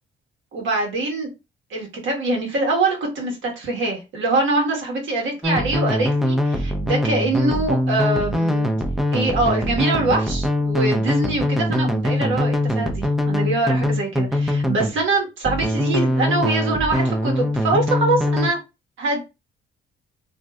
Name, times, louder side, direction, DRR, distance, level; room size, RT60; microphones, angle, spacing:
voice 1, 0.5-1.3 1.7-8.7 9.1-18.6 19.0-19.2, right 2 dB, 75° right, 0 dB, 1.2 m, -23 dB
sound 1, 5.4-15.0 15.4-18.5, left 1 dB, ahead, 0.5 m, -22 dB
3.1 x 2.6 x 2.3 m, 0.26 s
cardioid pair, 90°, 20 cm